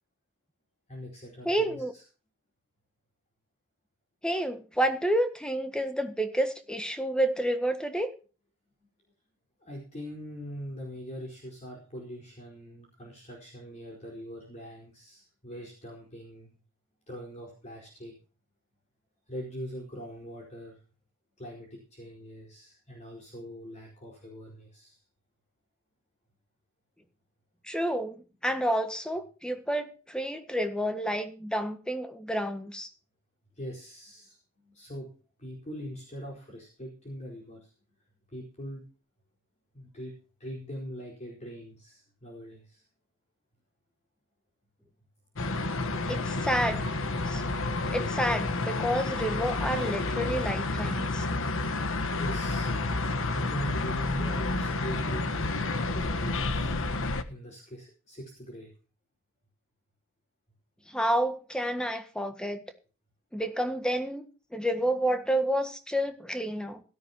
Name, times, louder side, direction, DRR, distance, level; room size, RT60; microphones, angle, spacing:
voice 1, 0.9-2.0 8.8-8.9 9.6-16.6 17.1-18.1 19.3-20.8 21.4-25.0 33.5-35.1 35.4-37.7 38.3-38.8 39.7-40.1 40.4-42.8 52.2-52.7 53.3-55.2 55.9-56.8 57.3-58.7, equal, 35° left, -1 dB, 4.7 m, -42 dB
voice 2, 1.4-1.9 4.2-8.1 27.6-32.9 46.1-46.8 47.2-47.4 47.9-51.2 60.9-62.6 63.3-64.3 64.5-66.8, right 1 dB, 5° left, 8 dB, 1.6 m, -29 dB
sound 1, 45.4-57.2, left 2 dB, 65° left, 1.2 m, -30 dB
17.0 x 13.5 x 2.9 m, 0.36 s
head